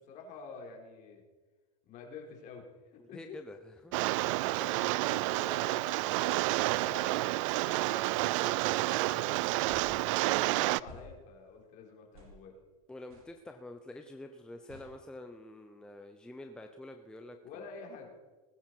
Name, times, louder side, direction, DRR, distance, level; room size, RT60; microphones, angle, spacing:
voice 1, 0.1-1.2 1.8-3.4 4.5-9.9 10.2-12.5 17.4-18.1, left 5 dB, 40° left, 1 dB, 3.8 m, -49 dB
voice 2, 3.0-3.9 12.9-17.7, left 1 dB, 5° left, 5 dB, 0.7 m, -47 dB
Rain, 3.9-10.8, right 20 dB, 60° right, 0.4 m, -30 dB
sound 1, 8.7-8.8 9.7-9.9 10.9-11.1 12.1-12.3 13.1-13.3 14.7-14.9, left 1 dB, 75° right, 4.8 m, -51 dB
19.5 x 10.0 x 4.6 m, 1.2 s
supercardioid pair, 135°, 19 cm